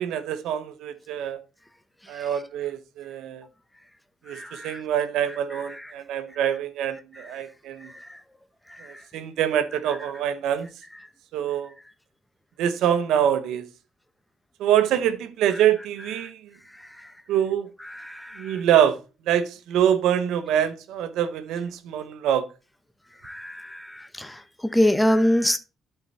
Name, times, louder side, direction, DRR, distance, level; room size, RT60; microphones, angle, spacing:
voice 1, 0.0-1.4 2.1-3.5 4.2-7.9 8.8-10.7 11.3-11.7 12.6-13.7 14.6-16.4 17.3-17.7 18.4-19.0 19.2-22.4, right 10 dB, 85° right, 1.0 m, -25 dB
voice 2, 4.4-4.8 18.0-18.4 23.2-23.8 24.2-24.3 24.7-25.6, equal, 5° left, 0.9 m, -23 dB
12.0 x 4.5 x 4.1 m
cardioid pair, 90°, 0 cm